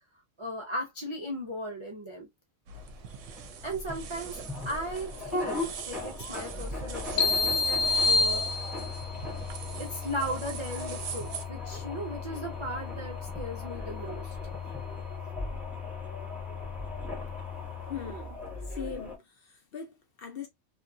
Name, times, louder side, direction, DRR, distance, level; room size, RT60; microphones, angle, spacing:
voice 1, 0.4-2.3 3.6-8.9 9.8-14.6, equal, 50° right, 0.3 m, -37 dB
sound 1, 2.7-19.2, left 4 dB, ahead, 0.6 m, -38 dB
sound 2, 2.7-11.4, right 7 dB, 70° right, 0.9 m, -42 dB
sound 3, 7.2-9.1, left 3 dB, 85° left, 1.2 m, -26 dB
voice 2, 17.9-18.4 18.7-20.5, left 7 dB, 50° left, 0.7 m, -40 dB
2.7 x 2.4 x 2.6 m
omnidirectional pair, 1.4 m